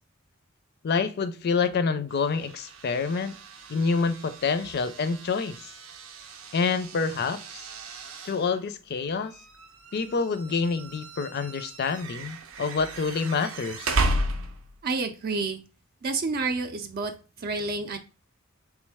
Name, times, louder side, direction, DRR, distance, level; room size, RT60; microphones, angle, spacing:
voice 1, 0.8-3.4 3.7-5.6 6.5-7.6 8.2-9.3 9.9-14.0, left 5 dB, 50° left, 11 dB, 0.4 m, -27 dB
sound 1, 2.1-14.9, right 2 dB, 90° right, 0.6 m, -35 dB
voice 2, 14.8-15.6 16.0-18.0, right 3 dB, 45° right, 6 dB, 0.4 m, -29 dB
3.5 x 3.1 x 3.3 m, 0.33 s
head